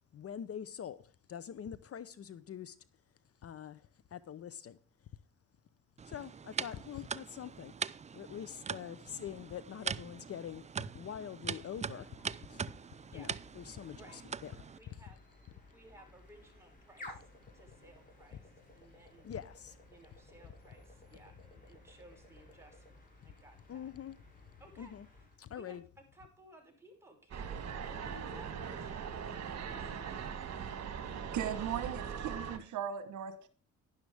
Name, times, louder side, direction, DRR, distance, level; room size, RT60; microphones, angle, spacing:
voice 1, 0.1-2.8 3.4-4.8 6.0-7.7 8.2-10.6 10.9-12.2 12.5-12.7 13.1-14.7 19.2-19.8 23.2-23.3 23.7-24.2 24.8-25.1 25.4-25.8, left 9 dB, 50° left, 0.8 m, -44 dB
sound 1, 6.0-14.8, right 6 dB, 25° right, 0.4 m, -42 dB
sound 2, 12.0-25.4, left 1 dB, 30° left, 6.6 m, -57 dB
voice 2, 14.7-15.2 15.7-19.3 19.9-23.9 24.6-25.0 25.5-25.8 26.1-29.9, right 1 dB, 10° right, 5.7 m, -59 dB
sound 3, 27.3-32.6, right 7 dB, 60° right, 2.1 m, -40 dB
voice 3, 31.2-33.5, right 9 dB, 75° right, 1.3 m, -38 dB
11.5 x 11.0 x 3.5 m
cardioid pair, 90°, 30 cm